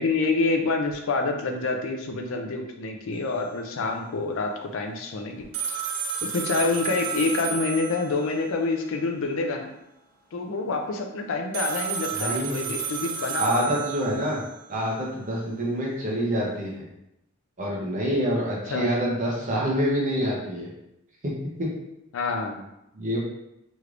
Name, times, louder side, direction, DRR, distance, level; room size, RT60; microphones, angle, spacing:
voice 1, 0.0-5.5 6.3-9.7 10.3-13.8 18.7-18.9 22.1-22.7, left 3 dB, 60° left, 4 dB, 0.4 m, -27 dB
sound 1, 5.5-8.4 11.5-14.5, right 7 dB, 80° right, 0.5 m, -31 dB
voice 2, 12.2-12.7 13.4-14.4 14.7-16.9 17.6-20.7 21.2-21.3 21.6-21.7 22.9-23.2, equal, 35° right, -3 dB, 0.8 m, -26 dB
3.2 x 3.0 x 2.5 m, 0.86 s
head